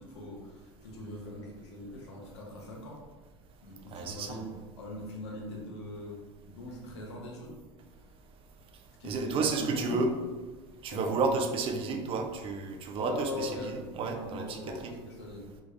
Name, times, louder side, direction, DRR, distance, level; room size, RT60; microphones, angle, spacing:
voice 1, 0.0-3.0 3.6-7.6 9.0-10.0 10.9-11.2 12.9-15.5, left 1 dB, 90° left, -1 dB, 1.0 m, -41 dB
voice 2, 3.9-4.4 9.0-10.1 10.8-13.5 14.0-14.9, right 4 dB, 40° right, 5 dB, 0.5 m, -31 dB
3.8 x 2.4 x 3.2 m, 1.3 s
supercardioid pair, 105°, 14 cm